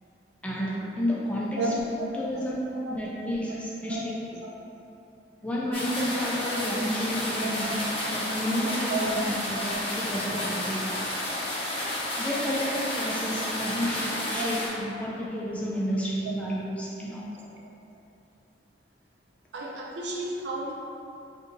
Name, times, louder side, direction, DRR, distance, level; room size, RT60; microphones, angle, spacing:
voice 1, 0.4-1.7 2.1-2.6 2.9-4.1 5.4-7.8 8.1-9.2 9.5-11.0 12.2-17.5, equal, 5° left, -6 dB, 0.3 m, -31 dB
voice 2, 1.6-2.1 2.8-3.0 3.8-4.0 7.4-7.7 8.9-9.2 9.5-9.6 14.3-14.5 19.5-20.7, right 2 dB, 80° right, -3 dB, 0.5 m, -32 dB
sound 1, 5.7-14.7, left 1 dB, 30° left, 0.8 m, -31 dB
4.1 x 2.5 x 2.6 m, 2.7 s
head